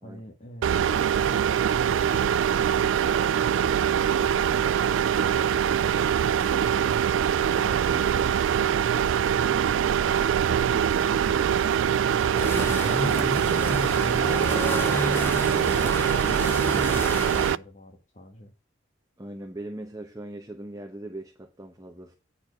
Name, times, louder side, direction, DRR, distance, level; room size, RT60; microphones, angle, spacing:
voice 1, 0.0-4.7 6.6-7.1 7.4-13.9 14.5-18.5, left 1 dB, 40° left, 1.2 m, -45 dB
sound 1, 0.6-17.6, right 8 dB, 90° right, 0.3 m, -23 dB
sound 2, 12.3-17.5, left 1 dB, 10° left, 0.4 m, -31 dB
voice 2, 19.2-22.1, right 1 dB, 15° right, 0.9 m, -40 dB
8.6 x 4.2 x 6.1 m
head